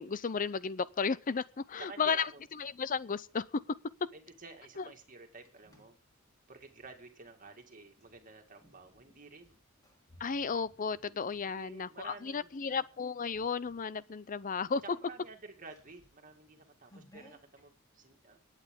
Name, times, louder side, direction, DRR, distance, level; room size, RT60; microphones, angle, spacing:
voice 1, 0.0-2.3 2.6-3.4 4.8-4.9 10.2-14.8, left 5 dB, 40° left, 0.5 m, -34 dB
voice 2, 1.8-2.4 4.1-6.0 6.5-9.6 11.4-12.8 14.8-18.4, right 3 dB, 40° right, 2.2 m, -51 dB
sound 1, 5.0-7.0 7.9-12.2 12.7-12.9 13.3-13.9 14.3-14.4 14.7-17.6, equal, 20° left, 4.0 m, -63 dB
24.0 x 9.1 x 3.7 m
head